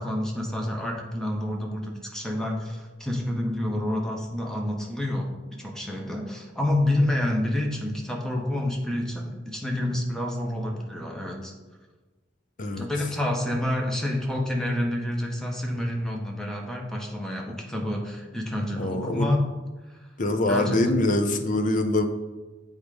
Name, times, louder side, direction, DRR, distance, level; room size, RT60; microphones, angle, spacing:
voice 1, 0.0-11.5 12.8-19.5 19.9-20.0 20.5-20.8, left 1 dB, 5° left, 0 dB, 1.0 m, -28 dB
voice 2, 18.8-19.3 20.2-22.0, left 1 dB, 45° left, 7 dB, 0.7 m, -24 dB
8.0 x 3.7 x 5.0 m, 1.2 s
head